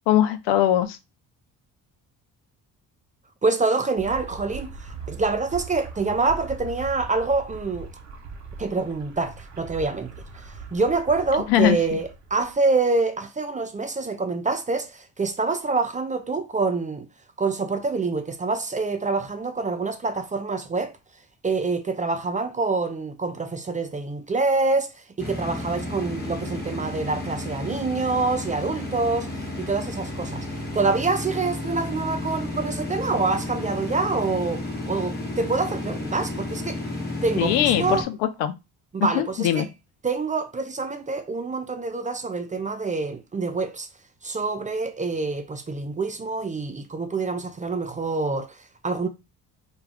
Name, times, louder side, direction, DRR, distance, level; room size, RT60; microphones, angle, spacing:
voice 1, 0.1-1.0 11.5-11.8 37.4-38.5 39.1-39.7, left 12 dB, 80° left, 0.5 m, -21 dB
voice 2, 3.4-7.9 8.6-17.1 17.4-20.9 21.4-29.3 29.6-30.5 30.7-36.8 37.2-38.1 38.9-39.7 40.0-43.9 44.2-49.1, right 3 dB, 20° right, 0.4 m, -26 dB
sound 1, 4.0-12.5, right 4 dB, 40° right, 0.9 m, -40 dB
sound 2, 25.2-38.0, left 2 dB, 25° left, 1.1 m, -32 dB
2.3 x 2.3 x 3.4 m
supercardioid pair, 65°, 41 cm